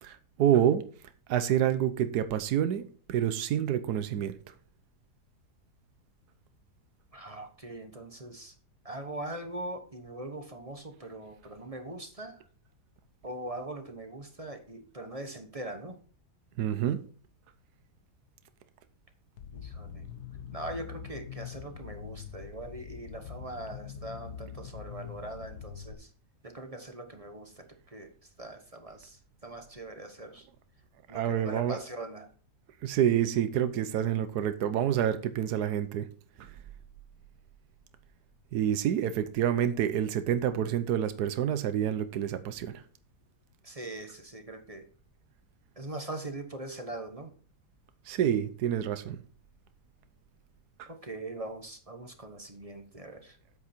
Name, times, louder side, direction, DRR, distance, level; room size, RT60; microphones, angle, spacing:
voice 1, 0.0-0.8 1.3-4.4 16.6-17.0 31.1-31.8 32.8-36.1 38.5-42.8 48.1-49.2, right 10 dB, 75° right, 1.4 m, -28 dB
voice 2, 7.1-8.5 8.8-12.4 13.2-16.0 19.5-20.1 20.5-26.1 26.4-28.1 28.4-30.5 31.1-32.3 43.6-44.9 45.8-47.3 50.9-53.4, right 1 dB, 25° right, 1.1 m, -41 dB
sound 1, 19.4-25.9, left 8 dB, 70° left, 1.6 m, -44 dB
8.8 x 8.3 x 4.4 m
omnidirectional pair, 1.8 m